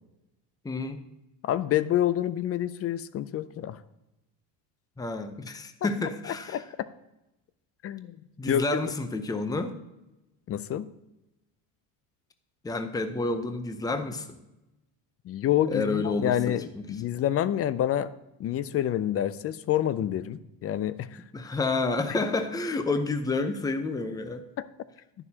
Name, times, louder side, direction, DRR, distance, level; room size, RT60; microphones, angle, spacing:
voice 1, 0.6-1.0 5.0-6.6 8.4-9.8 12.6-14.4 15.7-17.0 21.3-24.4, left 3 dB, 10° left, 8 dB, 0.7 m, -29 dB
voice 2, 1.4-3.8 6.5-6.9 7.8-8.2 8.5-8.8 10.5-10.9 15.3-18.1 18.4-21.2 24.6-24.7, left 11 dB, 35° left, 15 dB, 0.4 m, -28 dB
11.0 x 11.0 x 2.9 m, 0.94 s
supercardioid pair, 115°, 48 cm